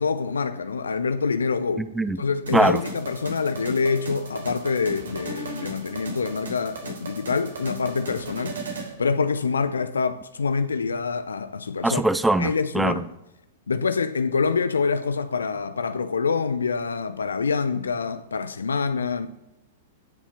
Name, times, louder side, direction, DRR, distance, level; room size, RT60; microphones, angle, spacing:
voice 1, 0.0-1.9 2.2-8.6 9.0-12.0 12.4-13.0 13.7-19.3, left 5 dB, 70° left, 0.7 m, -26 dB
voice 2, 1.8-2.2 2.5-2.8 11.8-13.0, right 2 dB, 5° right, 0.7 m, -22 dB
sound 1, 2.5-8.9, right 2 dB, 70° right, 3.6 m, -37 dB
16.5 x 7.2 x 7.0 m
figure-of-eight pair, 100°, 0 cm